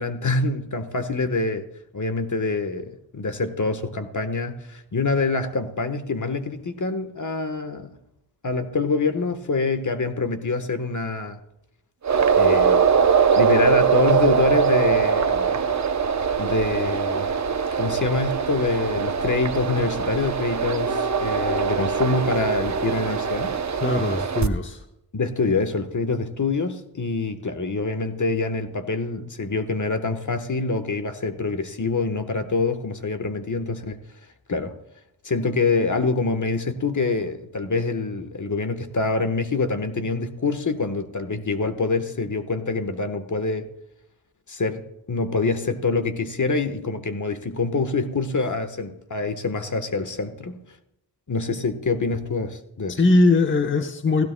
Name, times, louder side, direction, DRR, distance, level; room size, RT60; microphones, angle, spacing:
voice 1, 0.0-1.6 1.9-8.0 8.4-11.4 12.3-12.8 13.1-15.6 16.4-17.3 17.7-23.6 25.1-34.0 34.5-34.7 35.2-43.7 44.5-50.6 51.3-53.0, left 3 dB, 45° left, 1.3 m, -25 dB
sound 1, 12.0-24.5, right 6 dB, 40° right, 0.8 m, -22 dB
voice 2, 23.8-24.8 53.0-54.3, left 2 dB, 25° left, 1.1 m, -20 dB
17.0 x 16.0 x 2.3 m
cardioid pair, 50°, 43 cm